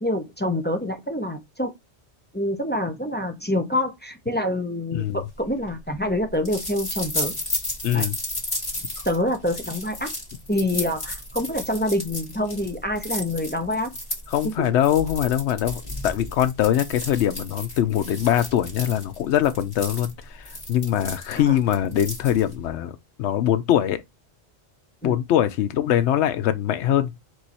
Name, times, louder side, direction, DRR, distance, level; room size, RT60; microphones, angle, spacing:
voice 1, 0.0-1.7 2.3-7.3 7.9-8.1 9.0-10.1 10.5-13.9 14.4-14.7 21.4-21.6 25.0-25.2, left 1 dB, 10° left, 0.6 m, -26 dB
voice 2, 4.9-5.2 7.8-8.2 14.3-20.1 20.4-24.0 25.0-27.1, left 11 dB, 85° left, 0.9 m, -22 dB
sound 1, 5.2-22.7, left 1 dB, 35° left, 1.6 m, -34 dB
4.6 x 2.7 x 4.1 m
omnidirectional pair, 1.1 m